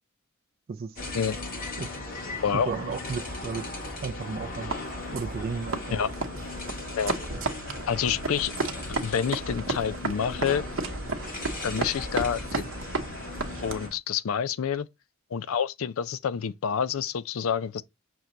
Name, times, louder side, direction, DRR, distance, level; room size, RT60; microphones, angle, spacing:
voice 1, 0.7-1.2 1.8-2.2 2.5-3.8 4.0-4.7 5.1-6.0, right 5 dB, 45° right, 0.4 m, -34 dB
sound 1, 1.0-13.9, left 2 dB, 45° left, 1.6 m, -37 dB
sound 2, 4.7-14.0, right 3 dB, 70° right, 0.9 m, -34 dB
voice 2, 7.9-8.5 9.0-10.7 11.6-12.5 13.6-14.9 15.3-17.8, left 7 dB, 85° left, 0.4 m, -28 dB
6.0 x 2.2 x 3.9 m
head